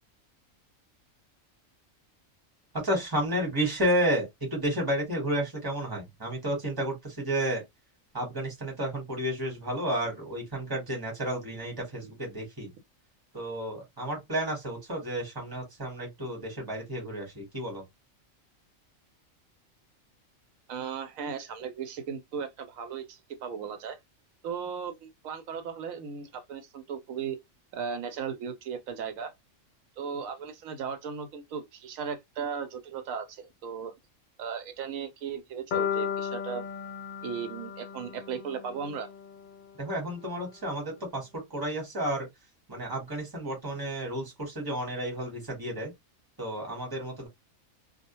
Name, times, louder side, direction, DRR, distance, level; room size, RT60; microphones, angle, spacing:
voice 1, 2.7-7.6 8.1-12.7 13.3-17.8 39.8-42.3 42.7-45.9 46.4-47.3, right 1 dB, 20° right, 1.1 m, -31 dB
voice 2, 20.7-24.0 24.4-27.4 27.7-29.3 30.0-33.9 34.4-36.6 37.2-39.1, right 6 dB, 80° right, 1.0 m, -36 dB
sound 1, 35.7-39.8, left 8 dB, 80° left, 0.4 m, -35 dB
2.3 x 2.1 x 2.9 m
omnidirectional pair, 1.4 m